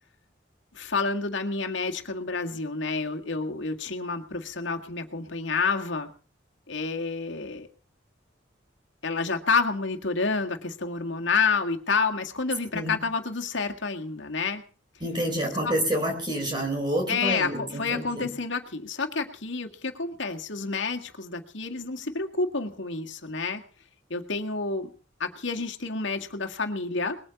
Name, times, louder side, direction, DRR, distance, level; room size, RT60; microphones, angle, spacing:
voice 1, 0.7-6.1 6.7-7.7 9.0-14.6 15.6-15.8 17.1-23.6 24.1-24.9 25.2-27.2, left 4 dB, 75° left, 4 dB, 1.9 m, -29 dB
voice 2, 12.7-13.0 15.0-18.3, right 1 dB, 25° right, 3 dB, 4.7 m, -28 dB
20.5 x 8.8 x 7.0 m, 0.41 s
head